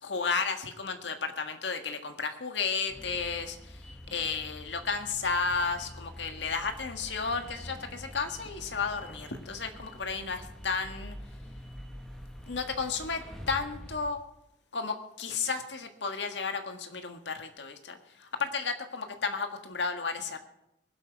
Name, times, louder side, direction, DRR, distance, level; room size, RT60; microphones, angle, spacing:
voice 1, 0.0-11.2 12.5-14.2 14.7-20.4, left 5 dB, 80° left, 6 dB, 1.6 m, -33 dB
sound 1, 2.9-14.1, equal, 5° left, 1.8 m, -46 dB
22.5 x 8.1 x 4.7 m, 0.84 s
head